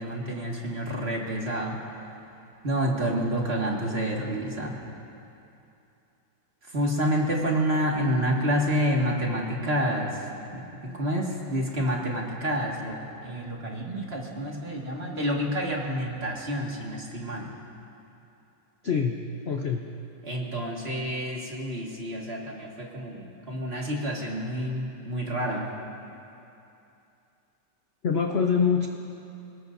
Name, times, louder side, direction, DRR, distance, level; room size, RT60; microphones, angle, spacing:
voice 1, 0.0-1.8 2.6-4.8 6.7-10.3 10.5-17.5 20.2-25.7, equal, 35° right, -2 dB, 2.2 m, -28 dB
voice 2, 18.8-19.2 19.4-19.9 28.0-28.9, left 6 dB, 50° left, 3 dB, 0.8 m, -24 dB
28.0 x 19.0 x 2.7 m, 2.7 s
omnidirectional pair, 2.0 m